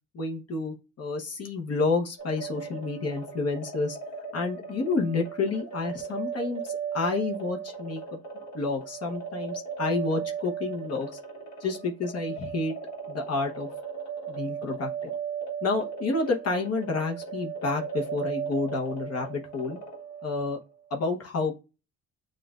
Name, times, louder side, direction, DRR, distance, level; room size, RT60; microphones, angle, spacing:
voice 1, 0.1-4.0 4.3-8.0 8.5-11.2 11.6-12.7 13.1-13.7 14.3-14.9 15.6-19.8 20.2-20.6 20.9-21.5, left 3 dB, 55° left, 1 dB, 1.0 m, -29 dB
sound 1, 2.2-20.6, right 7 dB, 70° left, 1.3 m, -37 dB
7.5 x 2.5 x 2.4 m, 0.30 s
cardioid pair, 90°, 30 cm